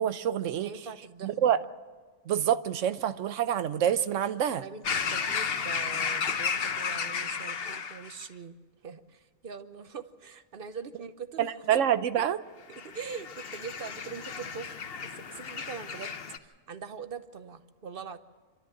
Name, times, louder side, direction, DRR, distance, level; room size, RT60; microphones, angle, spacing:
voice 1, 0.0-0.7 1.2-1.6 2.3-4.6 11.4-12.4, right 10 dB, 90° right, 13 dB, 1.1 m, -27 dB
voice 2, 0.6-1.6 4.5-8.5 8.8-11.4 12.7-14.7 15.0-18.2, right 6 dB, 50° right, 11 dB, 1.0 m, -42 dB
sound 1, 4.8-8.2 12.7-16.4, left 6 dB, 55° left, 1.1 m, -33 dB
27.0 x 13.0 x 7.6 m, 1.4 s
omnidirectional pair, 1.2 m